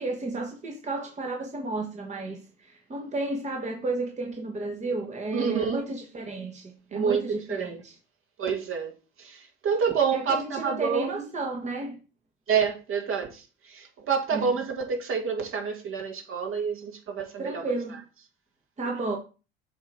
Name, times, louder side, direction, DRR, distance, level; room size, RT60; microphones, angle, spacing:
voice 1, 0.0-8.0 10.1-12.0 14.3-14.5 17.4-18.0 18.8-19.2, right 2 dB, 20° right, 1.4 m, -32 dB
voice 2, 5.3-5.8 6.9-7.8 8.4-11.2 12.5-17.6, right 6 dB, 45° right, 2.0 m, -28 dB
7.1 x 3.1 x 5.1 m
hypercardioid pair, 70°, 31 cm